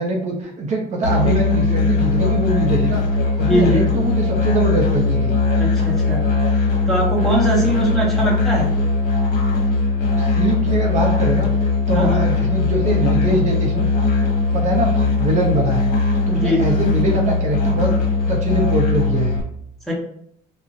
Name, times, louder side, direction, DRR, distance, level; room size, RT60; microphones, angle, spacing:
voice 1, 0.0-5.4 10.0-11.5 11.9-13.9 14.5-14.9 15.2-15.9 16.3-17.9 18.3-19.4, right 2 dB, 45° right, 0 dB, 0.5 m, -23 dB
Musical instrument, 1.0-19.4, left 3 dB, 55° left, 0.9 m, -19 dB
voice 2, 3.4-3.8 5.6-6.2 6.5-8.7 11.9-12.2 16.3-16.7 19.9-20.0, equal, ahead, -4 dB, 1.0 m, -21 dB
2.4 x 2.0 x 3.6 m, 0.68 s
cardioid pair, 110°, 17 cm